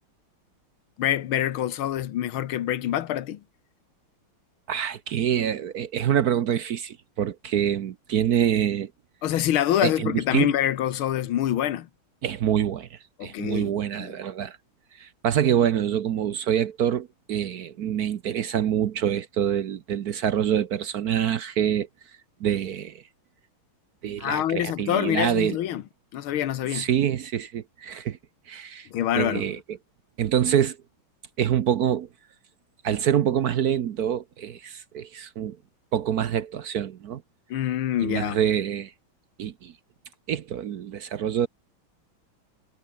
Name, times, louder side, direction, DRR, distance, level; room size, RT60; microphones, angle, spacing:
voice 1, 1.0-3.4 9.2-11.9 13.2-13.7 14.0-14.1 24.2-25.8 26.1-26.9 28.9-29.5 37.5-38.4, left 11 dB, 85° left, 1.9 m, -26 dB
voice 2, 4.7-8.9 9.8-10.5 12.2-14.6 15.0-21.9 22.4-23.0 24.0-25.6 26.7-28.2 28.5-28.9 29.1-29.6 30.2-30.8 31.4-32.1 32.8-35.6 35.9-37.2 38.0-38.9 39.4-39.7 40.3-41.5, right 9 dB, 60° right, 1.1 m, -26 dB
omnidirectional pair, 2.2 m